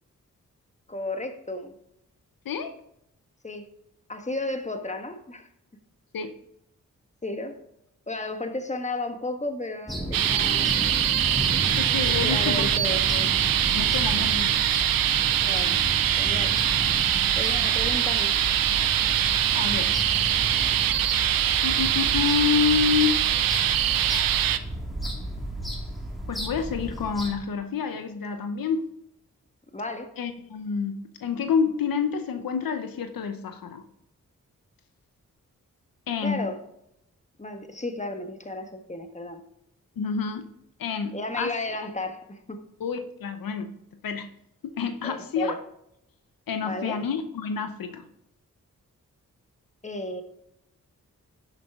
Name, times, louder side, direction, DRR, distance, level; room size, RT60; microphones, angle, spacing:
voice 1, 0.9-1.7 3.4-3.7 4.1-5.5 7.2-7.6 8.1-10.9 12.2-13.0 15.4-15.8 16.2-16.6 17.4-18.4 29.7-30.1 36.2-36.6 37.4-39.4 41.1-42.6 45.0-45.6 46.6-47.0 49.8-50.2, left 2 dB, 20° left, 6 dB, 1.5 m, -33 dB
sound 1, 9.9-27.3, equal, ahead, 3.0 m, -33 dB
sound 2, 10.1-24.6, right 11 dB, 90° right, 0.6 m, -23 dB
voice 2, 11.8-12.7 13.1-13.3 13.7-14.6 19.5-20.0 21.6-23.2 26.3-28.8 30.2-33.8 36.1-36.5 40.0-40.5 40.8-41.5 42.8-43.7 44.0-44.3 44.8-45.5 46.5-48.0, left 6 dB, 80° left, 8 dB, 0.8 m, -28 dB
10.5 x 6.6 x 3.7 m, 0.78 s
cardioid pair, 45°, 34 cm